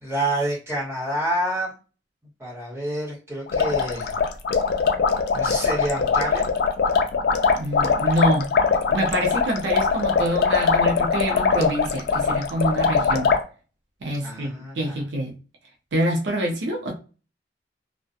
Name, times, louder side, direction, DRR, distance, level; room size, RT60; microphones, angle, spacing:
voice 1, 0.0-1.7 2.4-4.1 5.3-6.5 14.2-14.9, right 1 dB, 15° right, 1.2 m, -28 dB
sound 1, 3.5-13.4, left 5 dB, 60° left, 0.3 m, -22 dB
voice 2, 7.5-8.5 8.9-13.4 14.0-15.4 15.9-17.0, equal, 80° right, 0.6 m, -26 dB
2.3 x 2.2 x 2.6 m
head